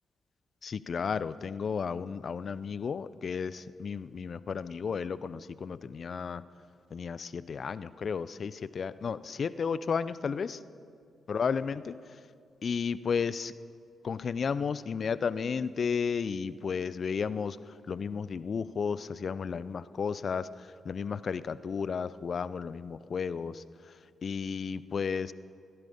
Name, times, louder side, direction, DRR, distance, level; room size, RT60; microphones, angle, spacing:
voice 1, 0.6-6.4 6.9-10.6 11.3-12.0 12.6-13.5 14.0-17.6 17.9-20.5 20.8-23.6 24.2-25.3, left 6 dB, 55° left, 17 dB, 0.5 m, -33 dB
16.5 x 13.0 x 5.4 m, 2.3 s
hypercardioid pair, 45°, 0 cm